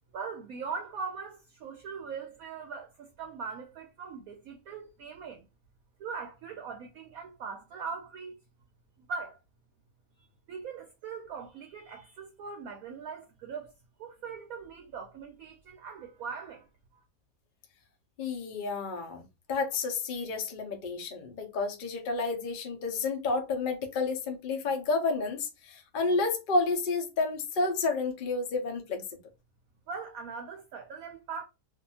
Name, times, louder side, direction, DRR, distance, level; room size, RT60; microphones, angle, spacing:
voice 1, 0.1-5.4 6.0-8.4 9.1-9.4 10.2-13.7 14.0-17.0 29.9-31.4, right 5 dB, 70° right, 0.9 m, -41 dB
voice 2, 18.2-29.0, left 3 dB, 80° left, 0.4 m, -30 dB
2.6 x 2.4 x 2.7 m
omnidirectional pair, 1.8 m